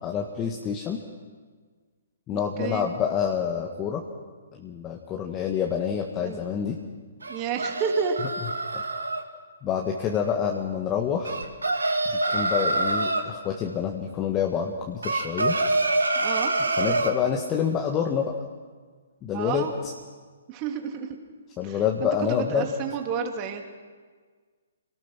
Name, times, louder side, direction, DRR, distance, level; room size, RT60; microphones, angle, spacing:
voice 1, 0.0-1.0 2.3-4.0 4.6-6.8 8.7-8.8 9.6-11.4 12.3-15.6 16.8-18.3 19.2-19.9 21.6-22.7, left 8 dB, 20° left, 1 dB, 1.7 m, -27 dB
voice 2, 2.3-2.9 6.2-6.4 7.3-8.2 16.2-16.5 19.3-19.7 20.5-21.1 21.6-23.6, right 6 dB, 30° right, 3 dB, 2.8 m, -30 dB
sound 1, 7.2-9.2 11.2-13.3 15.0-17.2, right 2 dB, 80° right, 2.2 m, -25 dB
26.5 x 18.5 x 6.2 m, 1.5 s
figure-of-eight pair, 130°, 0 cm